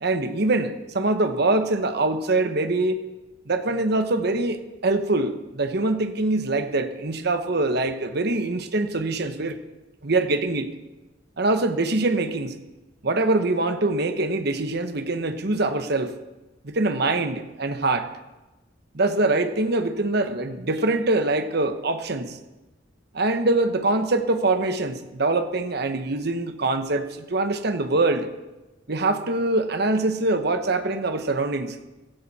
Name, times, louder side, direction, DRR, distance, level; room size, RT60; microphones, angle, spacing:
voice 1, 0.0-3.0 3.5-9.6 10.0-10.7 11.4-12.5 13.0-16.1 16.6-18.1 18.9-22.4 23.1-28.3 28.9-31.8, right 2 dB, 60° right, 8 dB, 1.2 m, -24 dB
16.0 x 15.0 x 4.3 m, 1.1 s
head